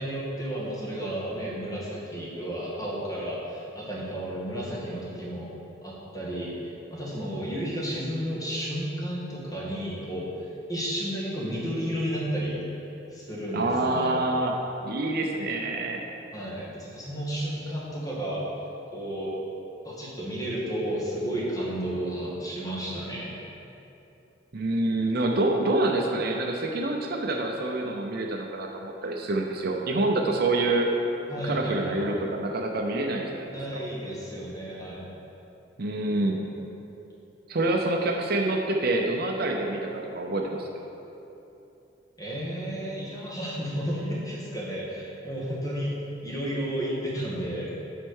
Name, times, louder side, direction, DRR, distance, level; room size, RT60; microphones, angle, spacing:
voice 1, 0.0-5.5 5.8-12.6 13.1-14.2 16.3-18.4 18.9-19.3 19.8-23.4 31.3-32.2 33.5-35.1 42.2-47.8, equal, 20° left, -6 dB, 1.6 m, -32 dB
voice 2, 13.5-14.6 14.8-16.0 24.5-30.9 31.4-33.6 35.8-36.4 37.5-40.7, right 2 dB, 50° right, 1 dB, 0.6 m, -27 dB
7.5 x 4.5 x 6.3 m, 2.9 s
head